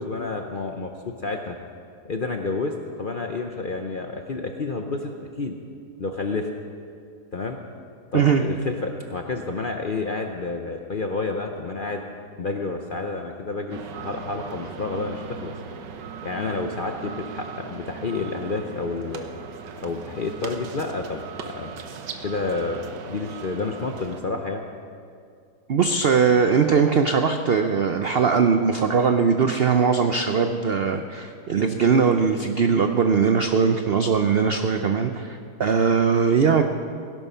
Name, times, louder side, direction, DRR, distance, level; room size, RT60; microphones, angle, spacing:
voice 1, 0.0-1.6 2.0-5.6 6.0-6.5 7.3-7.6 8.1-12.0 12.4-15.5 16.2-19.3 19.8-21.7 22.2-24.6, left 3 dB, 50° left, 4 dB, 0.6 m, -30 dB
sound 1, 13.7-24.2, right 6 dB, 85° right, 1.6 m, -38 dB
voice 2, 25.7-36.6, right 6 dB, 70° right, 6 dB, 0.5 m, -20 dB
17.0 x 11.0 x 5.6 m, 2.3 s
omnidirectional pair, 1.8 m